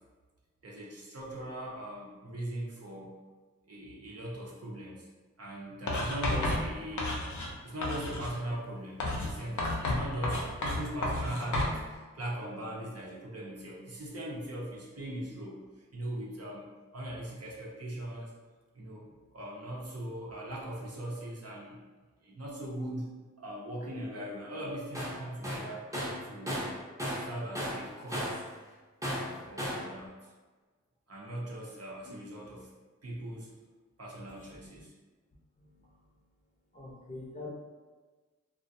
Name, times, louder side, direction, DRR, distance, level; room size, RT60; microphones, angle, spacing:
voice 1, 0.6-3.2 3.6-5.1 5.4-7.2 7.6-15.6 15.9-16.7 16.9-18.3 18.7-21.8 22.2-23.1 23.4-25.8 26.2-26.6 27.2-28.4 29.1-30.3 31.1-32.7 33.0-33.5 34.0-34.9, right 1 dB, 55° right, -4 dB, 0.6 m, -40 dB
Writing, 5.9-7.5 7.8-8.4 9.0-11.8, left 2 dB, 80° left, 0.5 m, -32 dB
Tools, 24.9-25.2 25.4-27.3 27.5-28.5 29.0-29.9, equal, 10° right, 0.7 m, -34 dB
voice 2, 34.2-34.7 35.6-36.1 36.7-37.5, left 2 dB, 25° left, -4 dB, 0.6 m, -47 dB
2.3 x 2.1 x 2.6 m, 1.3 s
wide cardioid pair, 50°, 30 cm